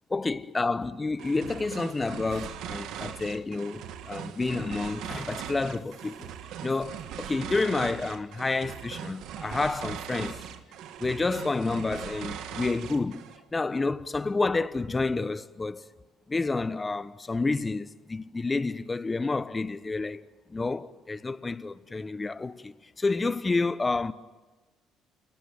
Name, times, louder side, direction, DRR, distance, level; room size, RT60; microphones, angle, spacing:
voice 1, 0.1-6.3 6.6-10.5 11.0-13.2 13.5-15.8 16.3-24.1, left 3 dB, 20° left, 1.1 m, -29 dB
sound 1, 1.2-13.4, right 9 dB, 70° right, 1.9 m, -40 dB
29.0 x 18.0 x 9.1 m
supercardioid pair, 80°, 0 cm